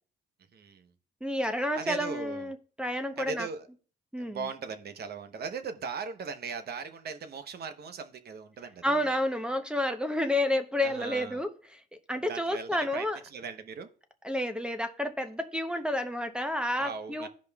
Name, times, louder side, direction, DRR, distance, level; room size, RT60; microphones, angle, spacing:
voice 1, 0.5-0.9 1.7-2.5 3.2-3.7 4.2-9.0 10.8-11.4 12.2-13.9 16.8-17.3, right 5 dB, 55° right, 0.9 m, -39 dB
voice 2, 1.2-3.5 4.1-4.4 8.8-13.2 14.2-17.3, left 1 dB, 5° right, 0.8 m, -30 dB
15.5 x 5.1 x 2.3 m
cardioid pair, 90°, 20 cm